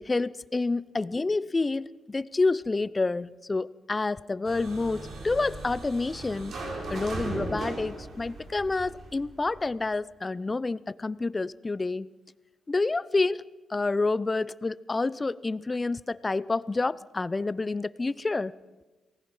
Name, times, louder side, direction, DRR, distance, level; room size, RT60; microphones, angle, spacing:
voice 1, 0.0-6.5 6.9-12.1 12.7-13.4 13.7-18.5, left 3 dB, 30° left, 19 dB, 0.8 m, -28 dB
sound 1, 4.4-9.6, right 2 dB, 65° right, 6.2 m, -38 dB
29.5 x 19.5 x 5.7 m, 1.2 s
supercardioid pair, 45°, 0 cm